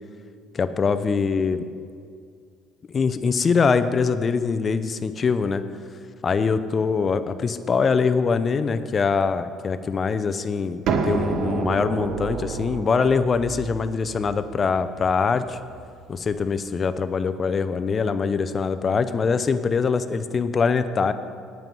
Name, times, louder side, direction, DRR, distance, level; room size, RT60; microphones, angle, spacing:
voice 1, 0.5-1.7 2.9-5.6 6.2-15.6 16.1-21.1, left 5 dB, 30° left, 12 dB, 0.5 m, -23 dB
sound 1, 10.9-16.4, right 5 dB, 55° right, 0.9 m, -30 dB
9.2 x 9.1 x 5.4 m, 2.2 s
cardioid pair, 120°, 0 cm